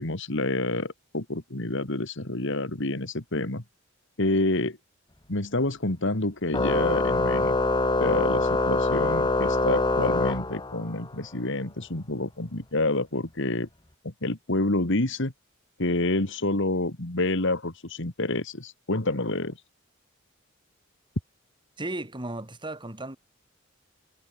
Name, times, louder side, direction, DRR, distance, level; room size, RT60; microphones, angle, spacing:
voice 1, 0.0-3.6 4.2-4.8 5.3-7.6 8.0-13.7 14.0-15.3 15.8-19.6, left 2 dB, 65° left, 2.6 m, -28 dB
Organ, 6.5-11.0, left 2 dB, 20° left, 1.7 m, -24 dB
voice 2, 21.8-23.2, right 2 dB, 25° right, 2.6 m, -35 dB
head